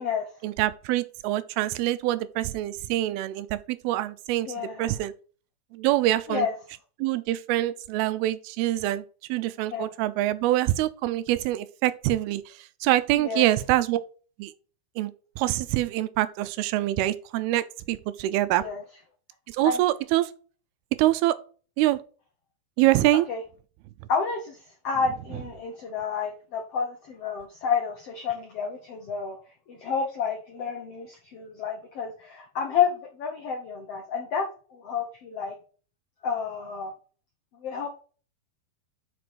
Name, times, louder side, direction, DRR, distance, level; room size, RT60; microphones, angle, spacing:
voice 1, 0.4-5.1 5.7-6.5 7.0-9.0 9.3-14.0 14.4-14.5 15.0-15.1 15.4-18.7 19.5-20.3 21.0-21.4 21.8-22.0 22.8-23.3, right 15 dB, 85° right, 2.6 m, -25 dB
voice 2, 4.5-4.9 6.3-6.5 9.7-9.9 13.2-13.4 18.6-18.8 19.6-19.8 23.3-23.4 24.1-24.6 24.8-29.4 29.7-35.5 36.2-36.9 37.6-37.9, left 6 dB, 85° left, 1.3 m, -30 dB
6.3 x 6.0 x 5.0 m
omnidirectional pair, 4.4 m